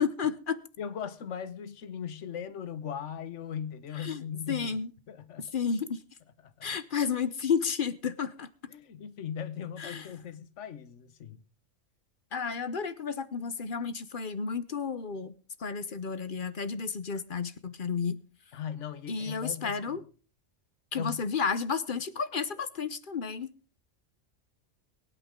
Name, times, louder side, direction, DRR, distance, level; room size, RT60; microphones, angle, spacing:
voice 1, 0.0-0.6 4.0-4.9 5.4-6.0 6.6-8.5 9.8-10.1 12.3-15.3 15.6-18.2 19.1-20.0 20.9-23.5, left 6 dB, 50° left, 0.9 m, -32 dB
voice 2, 0.8-4.8 5.1-5.5 6.4-6.7 8.7-11.4 18.5-20.1 20.9-21.2, left 8 dB, 70° left, 1.3 m, -39 dB
23.5 x 8.4 x 3.7 m
omnidirectional pair, 1.3 m